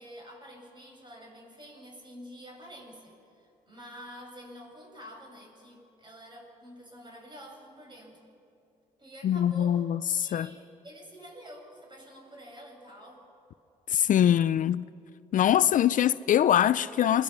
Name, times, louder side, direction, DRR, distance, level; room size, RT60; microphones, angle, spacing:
voice 1, 0.0-8.2 9.0-9.8 10.2-13.2, equal, 30° right, 7.6 m, -48 dB
voice 2, 9.2-10.5 13.9-14.9 15.3-17.2, left 10 dB, 60° left, 0.5 m, -23 dB
27.5 x 21.5 x 6.2 m
supercardioid pair, 70°, 16 cm